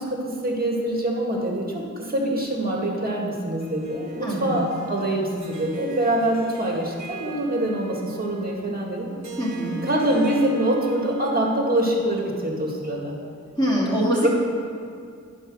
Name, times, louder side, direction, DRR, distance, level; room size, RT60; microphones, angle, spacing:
voice 1, 0.0-9.1 9.8-13.1 14.2-14.3, right 1 dB, 30° right, -1 dB, 1.8 m, -24 dB
Harp, 3.6-12.0, right 3 dB, 65° right, 1.0 m, -43 dB
voice 2, 4.2-4.6 9.4-9.8 13.6-14.3, equal, 15° left, -7 dB, 2.6 m, -23 dB
10.5 x 5.0 x 6.1 m, 2.3 s
wide cardioid pair, 75°, 30 cm